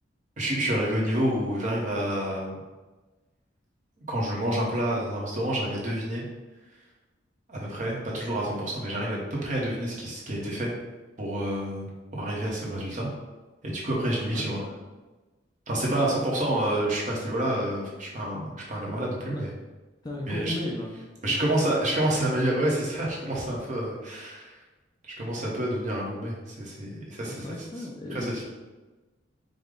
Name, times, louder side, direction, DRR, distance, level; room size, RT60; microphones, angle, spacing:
voice 1, 0.4-2.5 4.0-6.2 7.5-10.7 11.2-11.9 12.1-13.1 13.6-14.6 15.7-19.5 20.3-20.5 21.2-24.5 25.2-27.4 28.1-28.4, right 1 dB, 40° right, -4 dB, 1.0 m, -28 dB
voice 2, 14.3-14.8 16.1-16.3 19.3-19.5 20.0-20.9 21.3-21.5 27.2-28.4, left 1 dB, 20° left, -2 dB, 0.4 m, -36 dB
5.0 x 2.2 x 3.7 m, 1.2 s
head